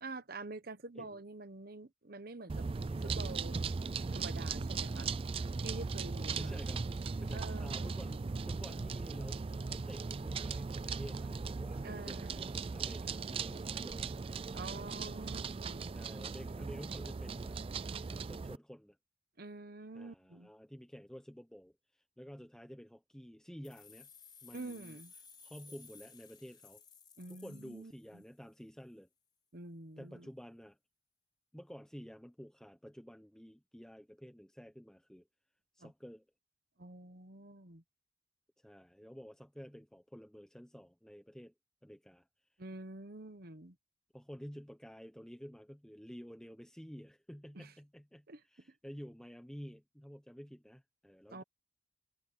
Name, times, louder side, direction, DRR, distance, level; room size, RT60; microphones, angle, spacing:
voice 1, 0.0-2.7 3.0-3.6 4.1-5.1 5.6-6.6 7.3-7.9 11.8-12.5 14.5-15.9 19.4-20.5 24.5-25.1 27.2-28.2 29.5-30.3 35.8-35.9 36.8-37.8 42.6-43.7 47.6-47.7 48.3-48.4 51.3-51.4, right 2 dB, 50° right, 1.1 m, -47 dB
sound 1, 2.5-18.6, right 4 dB, 30° right, 0.4 m, -38 dB
voice 2, 2.9-3.4 6.2-14.1 15.9-17.6 18.0-19.0 19.9-24.1 24.4-25.0 25.4-26.8 27.3-29.1 30.0-30.8 31.5-35.3 35.7-36.2 38.6-41.5 41.8-42.3 44.1-51.4, equal, 5° left, 0.8 m, -51 dB
sound 2, 23.6-28.4, left 5 dB, 25° left, 5.0 m, -58 dB
head